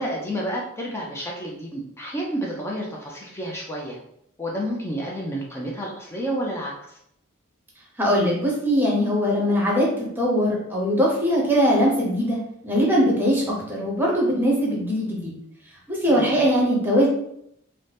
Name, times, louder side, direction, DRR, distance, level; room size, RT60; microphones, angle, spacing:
voice 1, 0.0-4.0 4.4-7.0 16.1-16.3, equal, 10° left, -2 dB, 0.4 m, -30 dB
voice 2, 8.0-15.4 15.9-17.1, equal, 10° right, -3 dB, 0.7 m, -21 dB
2.6 x 2.1 x 3.2 m, 0.74 s
head